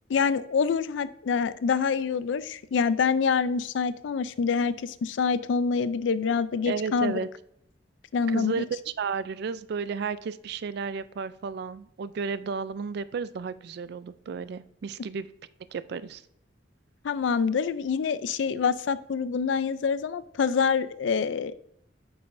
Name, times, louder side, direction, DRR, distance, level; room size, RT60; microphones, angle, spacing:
voice 1, 0.1-7.2 8.1-8.6 17.0-21.5, left 5 dB, 75° left, 15 dB, 0.4 m, -26 dB
voice 2, 6.7-7.3 8.3-8.7 9.0-15.3 15.7-16.2, right 5 dB, 60° right, 15 dB, 0.3 m, -33 dB
8.6 x 5.5 x 2.6 m, 0.74 s
head